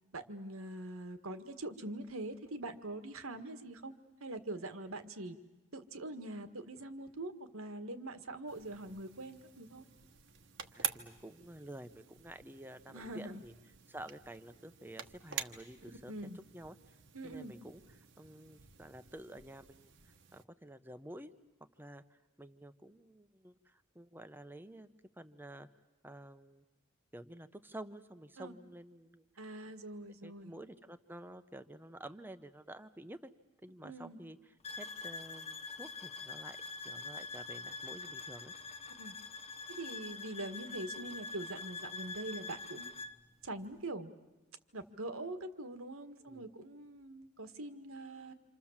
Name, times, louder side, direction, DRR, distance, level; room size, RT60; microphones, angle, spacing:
voice 1, 0.1-3.9 4.2-5.4 5.7-9.9 12.9-13.4 16.1-16.4 17.1-17.5 28.4-28.5 29.4-30.5 33.8-34.2 39.0-39.1 39.8-42.9 43.4-44.1 44.7-48.3, right 2 dB, 80° right, 9 dB, 1.8 m, -43 dB
sound 1, 8.5-20.4, right 9 dB, 55° right, 1.2 m, -48 dB
voice 2, 10.7-13.5 13.9-17.0 17.2-21.3 21.8-25.7 26.0-26.6 27.1-29.2 30.2-33.2 33.6-36.6 36.8-38.5 46.3-46.4, right 1 dB, 10° right, 11 dB, 0.9 m, -50 dB
sound 2, 34.6-43.2, left 3 dB, 30° left, 1.0 m, -45 dB
27.5 x 27.5 x 7.4 m, 1.1 s
head